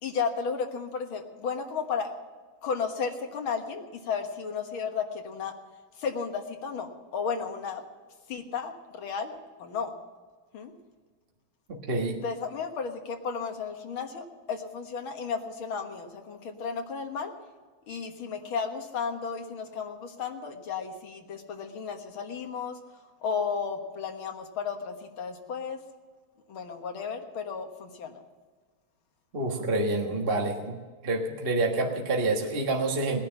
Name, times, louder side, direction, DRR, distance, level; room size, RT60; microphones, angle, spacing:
voice 1, 0.0-2.1 2.6-5.5 6.0-7.8 8.3-9.9 10.5-10.7 12.2-17.3 17.9-22.8 23.2-25.8 26.5-28.2, left 6 dB, 85° left, 4 dB, 2.3 m, -33 dB
voice 2, 11.7-12.2 29.3-30.8 31.0-33.2, right 2 dB, 30° right, 1 dB, 1.5 m, -27 dB
19.0 x 10.5 x 5.8 m, 1.5 s
omnidirectional pair, 2.2 m